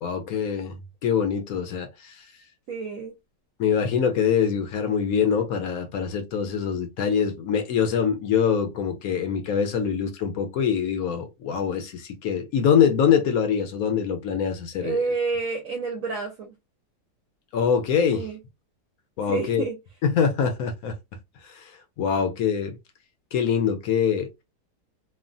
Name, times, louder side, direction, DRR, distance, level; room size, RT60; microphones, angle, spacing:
voice 1, 0.0-0.8 1.0-2.3 3.6-15.0 17.5-18.3 19.2-19.6 20.0-20.9 21.4-22.8 23.3-24.3, left 7 dB, 70° left, 0.9 m, -24 dB
voice 2, 2.7-3.1 14.8-16.5 18.1-18.4 19.3-19.8, right 4 dB, 65° right, 1.0 m, -29 dB
3.2 x 2.1 x 2.5 m
omnidirectional pair, 1.8 m